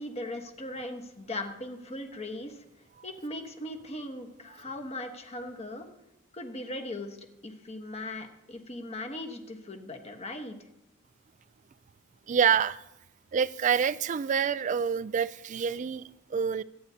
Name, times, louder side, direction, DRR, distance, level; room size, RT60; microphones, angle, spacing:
voice 1, 0.0-2.6 3.0-5.9 6.3-7.2 7.4-10.6, left 1 dB, 30° left, 1.3 m, -39 dB
voice 2, 12.3-12.8 13.3-16.0 16.3-16.6, right 7 dB, 35° right, 0.3 m, -27 dB
24.0 x 9.5 x 2.8 m
head